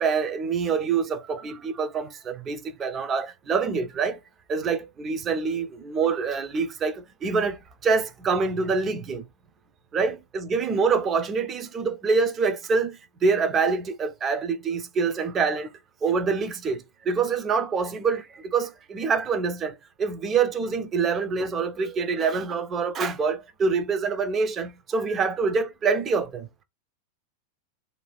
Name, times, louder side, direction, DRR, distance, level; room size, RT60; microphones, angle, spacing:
voice 1, 0.0-4.2 4.5-7.6 7.8-9.2 9.9-13.0 13.2-15.7 16.0-16.8 17.1-18.2 18.5-19.7 20.0-26.5, right 5 dB, 25° right, 0.6 m, -25 dB
2.6 x 2.4 x 3.3 m
figure-of-eight pair, 90°, 0 cm